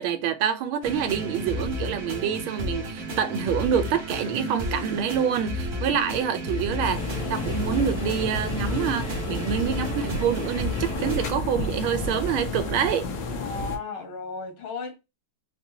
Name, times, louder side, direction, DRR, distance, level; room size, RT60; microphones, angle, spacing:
voice 1, 0.0-13.1, right 8 dB, 80° right, 1.4 m, -27 dB
sound 1, 0.8-11.3, equal, 45° right, 0.9 m, -32 dB
sound 2, 6.8-13.8, left 3 dB, 65° left, 1.3 m, -31 dB
voice 2, 13.4-15.0, left 4 dB, 90° left, 2.0 m, -34 dB
4.1 x 2.2 x 2.7 m
omnidirectional pair, 2.3 m